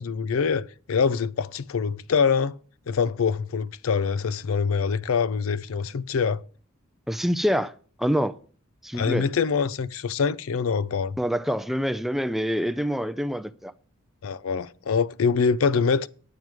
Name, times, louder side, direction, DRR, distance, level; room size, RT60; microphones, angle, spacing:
voice 1, 0.0-2.6 2.9-6.4 8.9-11.2 14.2-16.1, left 5 dB, 70° left, 0.5 m, -24 dB
voice 2, 7.1-7.7 8.0-8.3 8.8-9.3 11.2-13.7, equal, ahead, 0.4 m, -26 dB
9.5 x 9.0 x 4.7 m
head